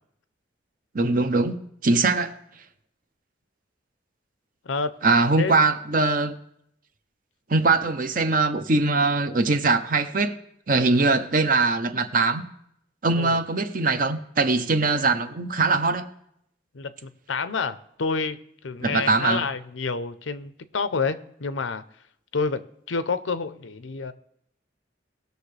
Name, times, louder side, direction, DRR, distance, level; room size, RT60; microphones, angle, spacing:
voice 1, 0.9-2.4 5.0-6.4 7.5-10.4 10.7-12.4 13.0-16.1 18.8-19.4, right 3 dB, 45° right, 0.7 m, -22 dB
voice 2, 16.7-21.8 22.3-22.6 22.9-24.1, left 4 dB, 85° left, 0.6 m, -28 dB
19.0 x 6.6 x 3.3 m
head